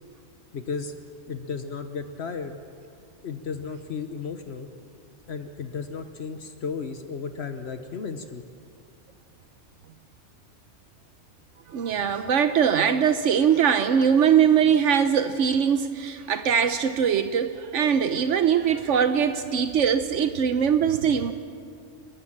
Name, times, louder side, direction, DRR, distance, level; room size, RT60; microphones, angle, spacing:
voice 1, 0.5-0.9 1.3-2.6 3.2-4.7 5.3-8.4, left 5 dB, 65° left, 8 dB, 1.2 m, -34 dB
voice 2, 11.7-21.3, right 7 dB, 80° right, 10 dB, 1.1 m, -21 dB
29.5 x 14.0 x 7.4 m, 2.3 s
omnidirectional pair, 1.2 m